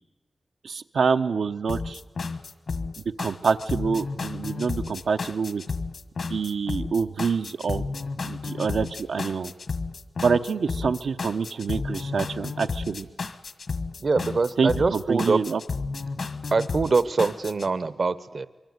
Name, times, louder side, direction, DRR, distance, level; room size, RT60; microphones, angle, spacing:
voice 1, 0.6-2.0 3.2-5.6 6.3-7.8 8.2-9.5 10.2-13.1 14.6-15.6, right 5 dB, 85° right, 7 dB, 0.9 m, -26 dB
sound 1, 1.7-17.7, left 4 dB, 60° left, 1.5 m, -32 dB
voice 2, 14.0-15.4 16.5-18.5, right 4 dB, 50° right, 15 dB, 0.8 m, -24 dB
24.5 x 23.5 x 9.6 m, 1.2 s
wide cardioid pair, 140°, 0 cm